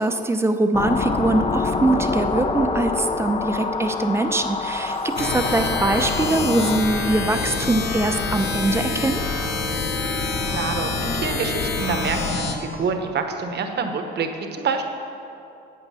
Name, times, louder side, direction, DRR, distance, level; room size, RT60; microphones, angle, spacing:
voice 1, 0.0-9.2, right 2 dB, 15° right, 7 dB, 0.7 m, -22 dB
sound 1, 0.7-6.8, left 3 dB, 30° left, 0.6 m, -26 dB
sound 2, 5.2-12.5, left 4 dB, 80° left, 1.2 m, -26 dB
voice 2, 10.5-14.8, right 5 dB, 60° right, 5 dB, 1.1 m, -27 dB
8.9 x 8.1 x 5.7 m, 2.7 s
cardioid pair, 90°, 20 cm